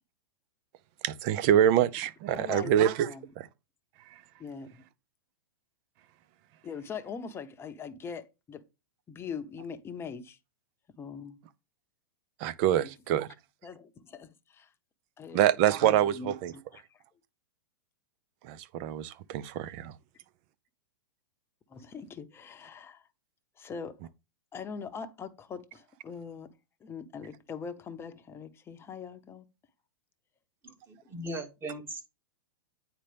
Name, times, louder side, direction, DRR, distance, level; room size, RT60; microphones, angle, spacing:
voice 1, 1.0-3.1 3.4-3.5 12.4-13.3 15.3-16.5 18.4-20.0, right 11 dB, 45° right, 0.6 m, -25 dB
voice 2, 2.3-2.8 3.0-3.3 4.4-4.8 6.6-8.6 9.1-10.4 11.0-11.4 12.8-12.9 13.6-14.7 15.2-15.4 15.8-17.0 21.7-23.1 23.6-24.0 24.5-26.5 26.8-29.4, left 6 dB, 20° left, 0.9 m, -42 dB
voice 3, 30.6-32.0, right 1 dB, 20° right, 1.7 m, -39 dB
9.0 x 4.4 x 3.4 m
hypercardioid pair, 120°, 12 cm